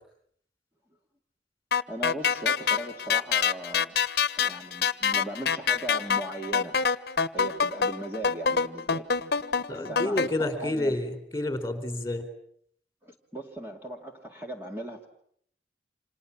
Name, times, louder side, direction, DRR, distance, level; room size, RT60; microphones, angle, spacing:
sound 1, 1.7-10.3, left 6 dB, 65° left, 1.1 m, -26 dB
voice 1, 1.9-4.0 4.3-6.8 7.3-9.1 9.7-11.0 13.0-15.1, right 1 dB, 15° right, 1 dB, 2.2 m, -38 dB
voice 2, 9.7-12.3, left 1 dB, 15° left, 9 dB, 4.3 m, -29 dB
29.5 x 27.0 x 7.3 m, 0.68 s
head